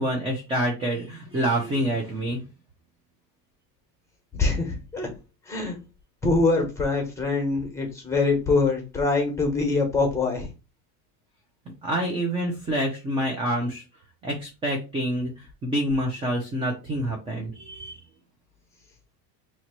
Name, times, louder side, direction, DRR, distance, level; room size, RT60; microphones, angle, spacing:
voice 1, 0.0-2.4 11.8-13.8 14.2-18.0, right 1 dB, 10° right, 0 dB, 0.4 m, -27 dB
voice 2, 4.4-5.1 5.5-5.8 6.2-10.5, left 3 dB, 5° left, 2 dB, 1.1 m, -24 dB
2.9 x 2.9 x 4.3 m, 0.29 s
cardioid pair, 150°, 48 cm